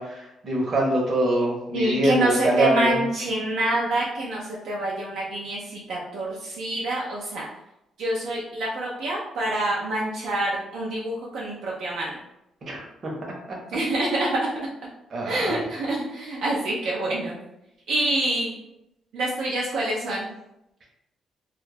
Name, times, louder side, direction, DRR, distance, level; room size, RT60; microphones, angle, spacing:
voice 1, 0.0-3.0 12.6-13.1 13.5-13.6 15.1-15.6, right 1 dB, 50° right, -1 dB, 0.8 m, -24 dB
voice 2, 1.7-7.5 8.0-12.1 13.7-14.3 15.2-17.4 17.9-18.5 19.1-20.3, right 1 dB, 80° right, -4 dB, 0.5 m, -26 dB
2.3 x 2.0 x 3.2 m, 0.86 s
cardioid pair, 90°, 0 cm